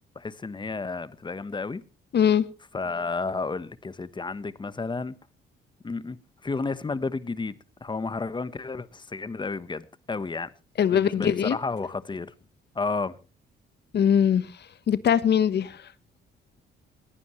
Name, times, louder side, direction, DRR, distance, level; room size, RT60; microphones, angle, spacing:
voice 1, 0.1-1.8 2.7-5.1 5.8-6.2 6.4-7.5 7.8-10.5 10.9-12.3 12.7-13.1, left 4 dB, 25° left, 1.2 m, -31 dB
voice 2, 2.1-2.4 10.8-11.6 13.9-14.5 14.9-15.9, left 8 dB, 60° left, 1.2 m, -21 dB
20.0 x 15.0 x 3.2 m
cardioid pair, 90°, 20 cm